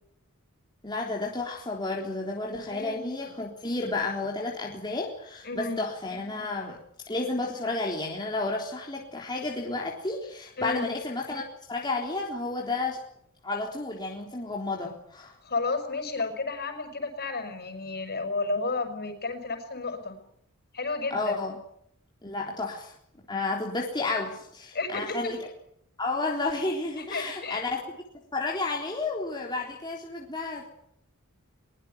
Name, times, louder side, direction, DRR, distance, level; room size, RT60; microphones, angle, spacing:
voice 1, 0.8-6.8 7.1-13.0 13.4-15.4 21.1-21.6 22.2-22.9 23.3-25.5 26.0-27.8 28.3-30.7, left 3 dB, 20° left, -1 dB, 3.7 m, -31 dB
voice 2, 2.7-3.0 5.4-5.8 10.6-10.9 15.4-20.2 20.7-21.4 24.7-25.0 27.0-27.6, left 3 dB, 50° left, 7 dB, 6.4 m, -32 dB
23.0 x 22.0 x 9.4 m, 0.73 s
head